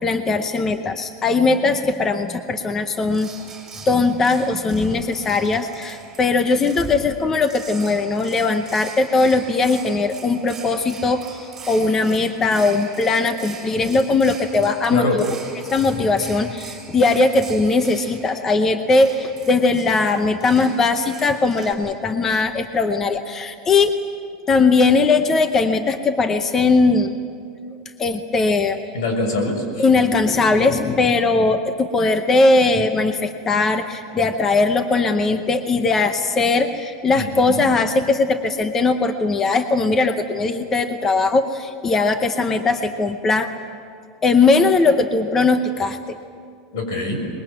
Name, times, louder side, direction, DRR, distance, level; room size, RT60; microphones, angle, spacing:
voice 1, 0.0-3.3 3.9-15.3 15.7-24.0 24.5-27.1 28.0-28.8 29.8-43.5 44.2-46.2, left 3 dB, 15° left, 8 dB, 0.7 m, -19 dB
sound 1, 3.1-21.7, right 5 dB, 15° right, 5.9 m, -40 dB
voice 2, 28.9-29.9 37.1-37.7 46.7-47.2, left 2 dB, 80° left, 4 dB, 6.6 m, -24 dB
24.0 x 21.5 x 9.0 m, 2.2 s
supercardioid pair, 180°, 2 cm